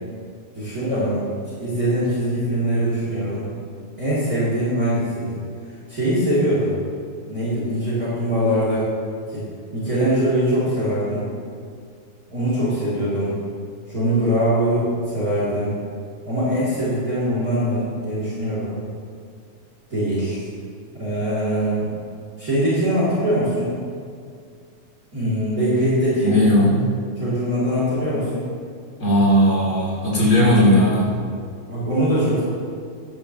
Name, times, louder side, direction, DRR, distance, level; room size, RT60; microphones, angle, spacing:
voice 1, 0.5-1.2 1.6-3.5 4.0-5.3 5.9-6.7 7.3-8.9 9.3-9.4 9.7-11.2 12.3-13.4 13.9-15.8 16.3-18.8 19.9-20.4 20.9-21.9 22.4-23.8 25.1-26.3 27.2-28.5 31.7-32.4, equal, 30° right, -9 dB, 3.0 m, -22 dB
voice 2, 26.2-26.9 29.0-31.1, equal, 35° left, -6 dB, 3.2 m, -17 dB
14.0 x 11.0 x 2.9 m, 2.3 s
omnidirectional pair, 3.4 m